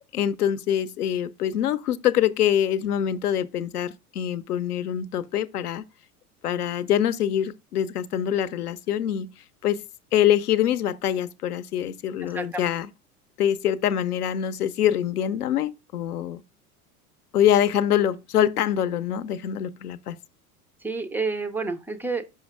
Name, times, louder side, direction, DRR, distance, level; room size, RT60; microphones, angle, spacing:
voice 1, 0.1-5.8 6.4-9.3 9.6-9.8 10.1-12.9 13.4-16.4 17.3-20.2, left 10 dB, 80° left, 0.6 m, -24 dB
voice 2, 12.2-12.6 20.8-22.2, right 3 dB, 5° right, 0.3 m, -29 dB
5.7 x 5.5 x 3.4 m
figure-of-eight pair, 80°, 45 cm